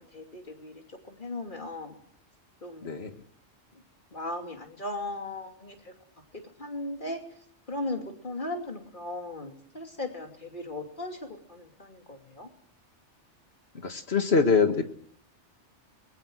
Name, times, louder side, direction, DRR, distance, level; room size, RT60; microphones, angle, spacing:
voice 1, 0.0-2.0 2.6-3.0 3.7-3.8 4.1-5.9 6.3-7.2 7.7-12.5, left 2 dB, 45° left, 3 dB, 2.9 m, -37 dB
voice 2, 2.8-3.2 13.7-14.8, left 5 dB, 60° left, 7 dB, 1.9 m, -24 dB
24.5 x 20.5 x 6.3 m, 0.68 s
omnidirectional pair, 1.2 m